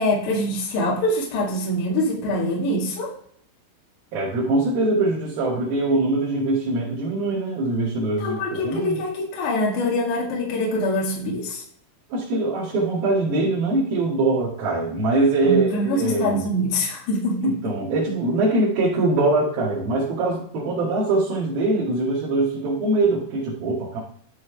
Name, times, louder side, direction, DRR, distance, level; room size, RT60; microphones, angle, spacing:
voice 1, 0.0-3.2 8.2-11.6 15.4-17.5, left 1 dB, 65° left, -2 dB, 4.1 m, -24 dB
voice 2, 4.1-9.0 12.1-16.4 17.4-24.0, right 2 dB, 55° right, -9 dB, 3.5 m, -22 dB
12.5 x 6.2 x 3.4 m, 0.62 s
omnidirectional pair, 5.6 m